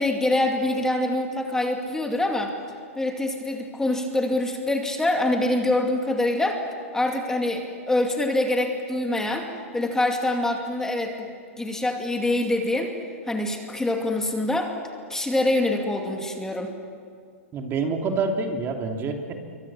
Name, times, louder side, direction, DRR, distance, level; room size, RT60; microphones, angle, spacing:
voice 1, 0.0-2.5 3.0-6.6 6.9-11.3 11.6-13.0 13.3-14.7 15.1-16.7, left 1 dB, 5° left, 3 dB, 2.5 m, -25 dB
voice 2, 17.5-19.4, right 4 dB, 30° right, 3 dB, 3.0 m, -27 dB
27.0 x 24.5 x 7.4 m, 2.2 s
hypercardioid pair, 115°, 8 cm